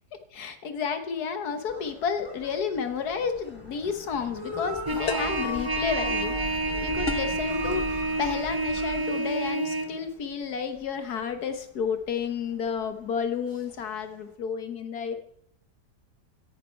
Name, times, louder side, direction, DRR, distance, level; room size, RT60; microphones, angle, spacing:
voice 1, 0.3-6.3 6.8-15.2, left 6 dB, 70° left, 8 dB, 1.7 m, -31 dB
sound 1, 1.7-10.2 10.5-12.9 13.4-14.0, left 2 dB, 15° left, 3.2 m, -39 dB
sound 2, 3.4-3.7 5.1-5.5 7.1-7.4, left 5 dB, 45° left, 0.9 m, -33 dB
Trumpet, 4.9-9.9, right 2 dB, 25° right, 0.5 m, -29 dB
17.5 x 10.0 x 4.5 m, 0.74 s
omnidirectional pair, 1.8 m